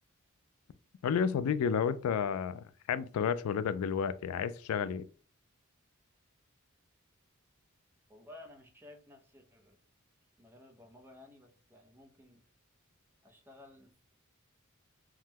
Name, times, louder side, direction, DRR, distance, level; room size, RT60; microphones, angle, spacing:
voice 1, 1.0-5.1, left 7 dB, 90° left, 0.3 m, -31 dB
voice 2, 8.1-9.8 10.4-12.4 13.2-13.9, left 2 dB, 10° right, 0.5 m, -55 dB
3.5 x 2.1 x 2.8 m
head